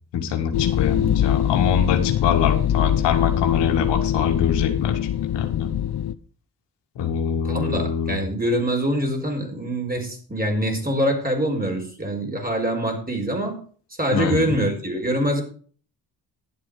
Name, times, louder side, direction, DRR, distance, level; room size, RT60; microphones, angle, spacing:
voice 1, 0.1-5.0 5.3-5.7 7.0-8.2 14.1-14.4, left 7 dB, 85° left, 4 dB, 2.0 m, -24 dB
sound 1, 0.5-6.1, left 10 dB, 65° left, 0.9 m, -22 dB
voice 2, 7.4-13.6 14.0-15.4, right 1 dB, 20° right, 3 dB, 4.8 m, -24 dB
11.5 x 7.9 x 5.1 m, 0.44 s
supercardioid pair, 65°, 41 cm